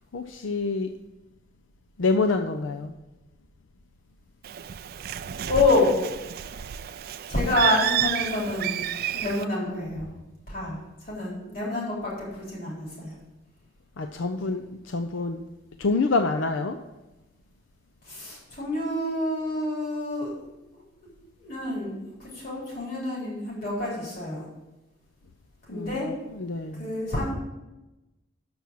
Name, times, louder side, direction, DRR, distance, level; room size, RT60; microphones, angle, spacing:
voice 1, 0.1-0.9 2.0-2.9 14.0-15.4 15.8-16.8 25.7-26.9, left 3 dB, 80° left, 6 dB, 0.5 m, -27 dB
Bird, 4.4-9.4, right 10 dB, 50° right, 0.3 m, -30 dB
voice 2, 5.4-6.0 7.3-8.9 9.1-10.1 10.5-13.1 18.0-20.3 20.7-21.1 21.4-21.9 22.2-24.5 25.7-26.1 26.8-27.4, left 2 dB, 50° left, -5 dB, 3.6 m, -28 dB
7.0 x 6.0 x 7.6 m, 1.0 s
head